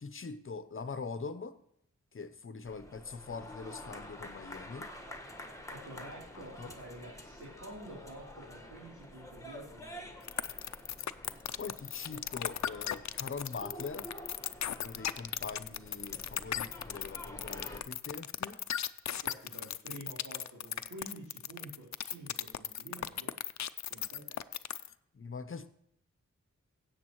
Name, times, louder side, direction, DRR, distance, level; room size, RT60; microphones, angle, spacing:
voice 1, 0.0-1.6 2.1-4.9 6.4-6.7 11.6-14.1 14.8-18.6 25.1-25.7, left 4 dB, 45° left, 12 dB, 0.8 m, -43 dB
sound 1, 2.6-17.8, left 1 dB, 10° left, 1.4 m, -49 dB
voice 2, 5.7-10.2 19.2-23.3 23.9-24.5, right 1 dB, 80° right, -6 dB, 3.3 m, -49 dB
sound 2, 10.3-24.9, left 9 dB, 70° left, 0.5 m, -36 dB
16.5 x 8.0 x 3.1 m, 0.73 s
wide cardioid pair, 75°, 29 cm